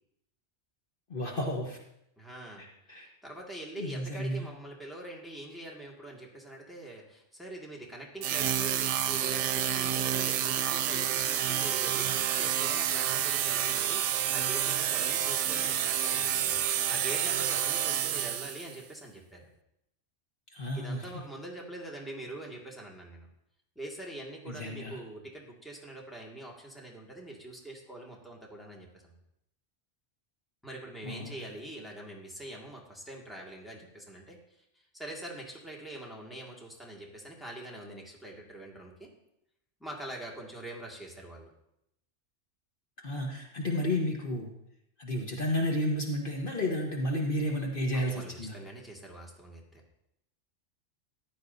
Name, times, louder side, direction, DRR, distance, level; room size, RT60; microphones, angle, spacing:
voice 1, 1.1-1.8 2.6-3.1 3.8-4.4 20.5-21.1 24.5-25.0 31.0-31.3 43.0-44.5 45.0-48.5, left 1 dB, 50° left, 0 dB, 1.3 m, -32 dB
voice 2, 2.2-2.7 3.0-19.5 20.7-23.3 23.8-29.1 30.6-39.1 39.8-41.5 47.9-49.8, right 1 dB, ahead, -2 dB, 1.9 m, -44 dB
sound 1, 8.2-18.8, right 10 dB, 85° right, 0.9 m, -29 dB
14.5 x 10.5 x 2.7 m, 0.81 s
omnidirectional pair, 1.2 m